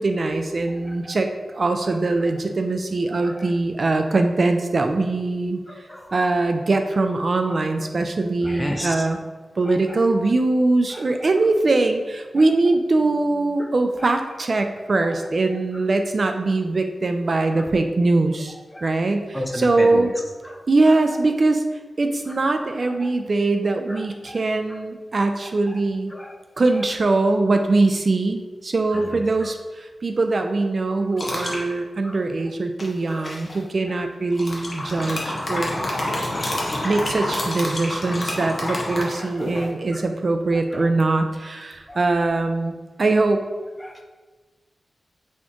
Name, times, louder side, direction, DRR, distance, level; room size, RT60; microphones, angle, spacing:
voice 1, 0.0-5.6 6.1-9.2 9.6-18.6 18.8-20.1 20.7-21.6 22.0-26.1 26.6-35.7 36.8-43.4, right 2 dB, 45° right, 6 dB, 0.3 m, -22 dB
voice 2, 0.8-1.2 3.2-3.5 5.7-6.1 8.4-9.1 9.7-10.0 10.9-11.3 18.7-18.9 19.3-20.1 20.4-21.0 23.0-23.1 23.9-24.4 25.7-25.8 26.1-26.3 28.9-29.5 32.0-32.2 33.1-33.2 34.8-34.9 35.7-36.0 37.0-37.1 38.3-38.4 39.2-40.0 40.7-40.9 41.9-42.3 43.8-44.0, left 1 dB, 15° left, 3 dB, 0.5 m, -35 dB
sound 1, 31.2-31.6 32.8-33.5 34.3-39.7, left 1 dB, 40° left, 0.9 m, -28 dB
4.2 x 3.0 x 3.5 m, 1.3 s
wide cardioid pair, 115°, 0 cm